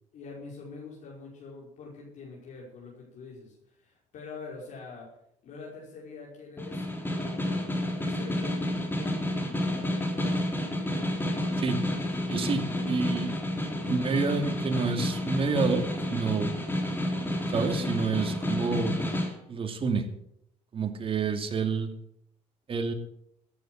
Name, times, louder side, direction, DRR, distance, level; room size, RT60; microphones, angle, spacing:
voice 1, 0.1-5.2 5.4-10.9 12.0-12.9, left 4 dB, 65° left, -4 dB, 5.6 m, -45 dB
Snare drum, 6.6-19.3, left 1 dB, 15° left, 3.7 m, -30 dB
voice 2, 12.3-13.4 13.9-16.5 17.5-19.0 19.5-20.1 20.7-21.9 22.7-22.9, right 4 dB, 40° right, 5 dB, 2.6 m, -28 dB
14.0 x 10.5 x 6.4 m, 0.74 s
cardioid pair, 95°, 14 cm